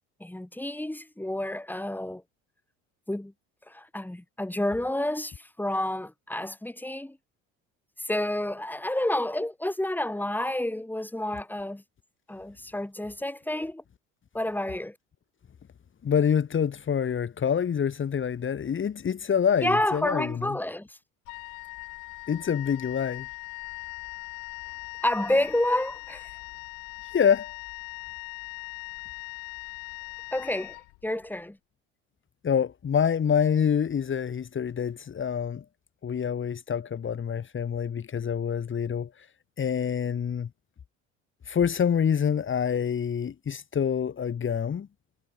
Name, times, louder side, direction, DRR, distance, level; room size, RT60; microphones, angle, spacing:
voice 1, 0.2-2.2 3.1-3.3 3.7-7.2 8.0-11.8 12.3-13.8 14.3-14.9 19.6-21.0 25.0-26.3 30.3-30.8 31.0-31.6, left 1 dB, 5° left, 4.9 m, -29 dB
voice 2, 16.0-20.6 22.3-23.3 27.0-27.5 32.4-35.6 36.0-39.3 39.6-40.5 41.5-44.9, left 7 dB, 35° left, 2.9 m, -26 dB
Wind instrument woodwind instrument, 21.2-31.3, left 30 dB, 70° left, 1.5 m, -41 dB
hypercardioid pair, 75°, 34 cm